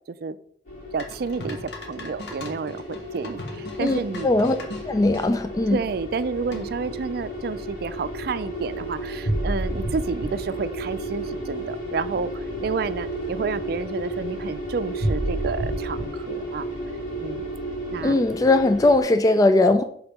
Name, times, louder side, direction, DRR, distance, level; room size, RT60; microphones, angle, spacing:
sound 1, 0.7-19.0, right 1 dB, 50° left, 3.1 m, -32 dB
voice 1, 0.9-4.3 5.7-16.7 17.2-17.5 17.9-18.2, right 5 dB, 60° right, 14 dB, 0.4 m, -30 dB
sound 2, 1.0-5.3 6.5-6.9, left 2 dB, 75° left, 1.3 m, -38 dB
voice 2, 3.8-4.6 4.9-5.8 18.0-19.8, left 2 dB, 20° left, 8 dB, 0.3 m, -19 dB
5.4 x 3.8 x 5.9 m, 0.64 s
head